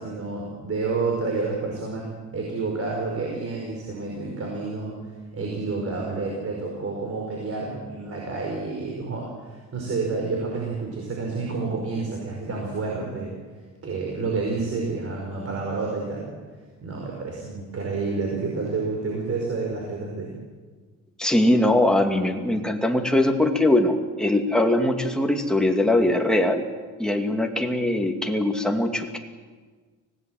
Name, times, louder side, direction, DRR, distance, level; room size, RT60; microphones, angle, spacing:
voice 1, 0.0-13.3 13.8-16.3 16.8-20.3, right 3 dB, 45° right, 0 dB, 5.2 m, -29 dB
voice 2, 21.2-26.6 27.0-29.2, left 1 dB, ahead, 2 dB, 2.3 m, -21 dB
25.0 x 18.0 x 7.7 m, 1.4 s
cardioid pair, 125°, 32 cm